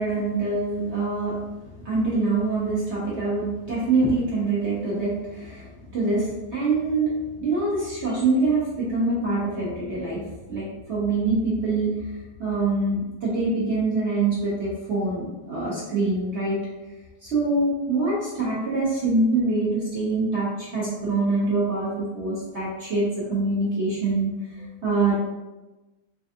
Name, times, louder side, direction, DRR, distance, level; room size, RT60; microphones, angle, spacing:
voice 1, 0.0-7.1 7.4-12.1 12.4-16.6 17.2-25.2, right 3 dB, 70° right, -7 dB, 0.6 m, -25 dB
3.8 x 2.5 x 2.6 m, 1.1 s
omnidirectional pair, 2.3 m